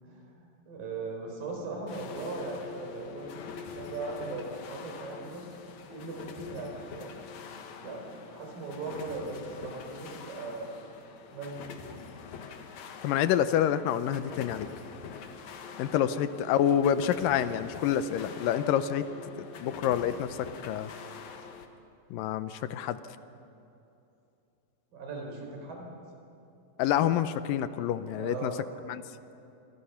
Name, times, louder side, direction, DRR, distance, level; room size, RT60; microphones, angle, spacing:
voice 1, 0.0-5.4 5.9-7.1 7.8-10.8 11.3-11.9 16.0-16.1 24.9-25.9 28.0-28.6, right 3 dB, 80° right, 1 dB, 5.9 m, -39 dB
sound 1, 1.9-21.7, left 6 dB, 65° left, 2.5 m, -45 dB
voice 2, 13.0-14.7 15.8-19.0 19.4-20.9 22.1-23.0 26.8-28.5 28.9-29.0, left 10 dB, 80° left, 12 dB, 2.4 m, -27 dB
28.0 x 23.5 x 5.8 m, 2.8 s
omnidirectional pair, 3.9 m